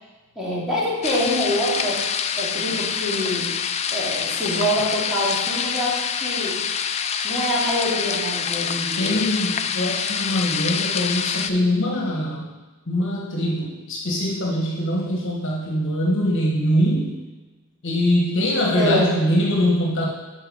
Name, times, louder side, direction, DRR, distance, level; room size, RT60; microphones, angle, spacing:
voice 1, 0.4-2.0 2.4-3.5 3.9-6.6 7.2-9.2 18.7-19.2, equal, ahead, -8 dB, 2.4 m, -25 dB
sound 1, 1.0-11.5, left 7 dB, 30° left, 0.3 m, -26 dB
voice 2, 9.0-12.5 12.9-17.2 17.8-20.1, equal, 60° left, -2 dB, 1.2 m, -22 dB
8.3 x 4.3 x 5.3 m, 1.2 s
head